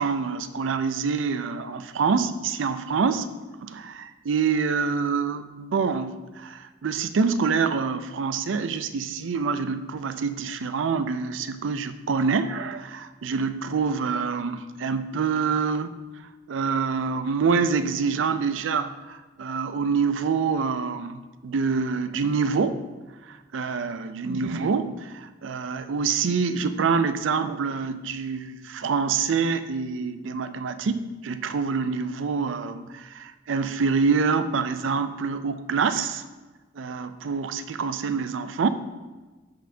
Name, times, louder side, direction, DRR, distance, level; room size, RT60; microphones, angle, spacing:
voice 1, 0.0-3.3 3.6-15.9 16.5-22.8 23.3-36.2 36.7-38.7, right 5 dB, 80° right, 11 dB, 0.4 m, -26 dB
12.5 x 4.2 x 2.7 m, 1.2 s
head